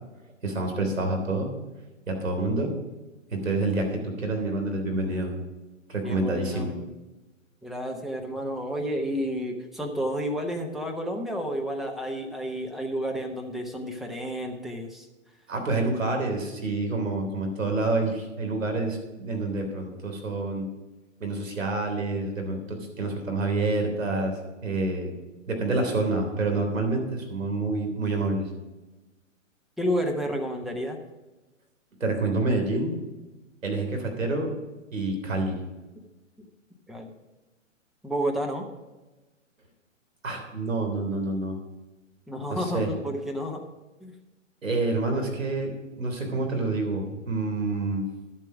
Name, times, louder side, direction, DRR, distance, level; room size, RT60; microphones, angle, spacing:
voice 1, 0.4-1.5 2.1-2.7 3.3-5.3 5.9-6.7 15.5-20.7 21.2-25.1 25.5-28.5 32.0-32.9 33.6-34.5 34.9-35.5 40.2-41.6 42.5-42.9 44.6-45.7 46.0-48.1, right 2 dB, 80° right, 3 dB, 3.4 m, -27 dB
voice 2, 6.0-6.9 7.6-15.1 29.8-31.0 36.9-37.1 38.0-38.6 42.3-43.6 44.0-44.1, equal, ahead, 1 dB, 0.8 m, -31 dB
12.0 x 7.6 x 4.9 m, 1.1 s
figure-of-eight pair, 125°, 38 cm